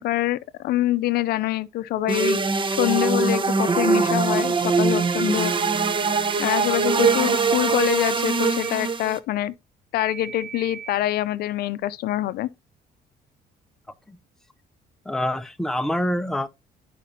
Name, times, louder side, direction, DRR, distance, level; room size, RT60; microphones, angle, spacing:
voice 1, 0.0-2.4 2.7-5.5 6.4-9.5 9.9-12.5, left 14 dB, 70° left, 0.5 m, -25 dB
Telephone, 2.0-2.5 5.5-6.0 6.9-7.2 8.4-8.7 10.0-11.0, right 5 dB, 50° right, 1.1 m, -37 dB
sound 1, 2.1-9.2, right 4 dB, 30° right, 0.8 m, -22 dB
voice 2, 15.1-16.5, left 1 dB, 5° left, 0.5 m, -26 dB
11.5 x 5.0 x 2.7 m
cardioid pair, 110°, 17 cm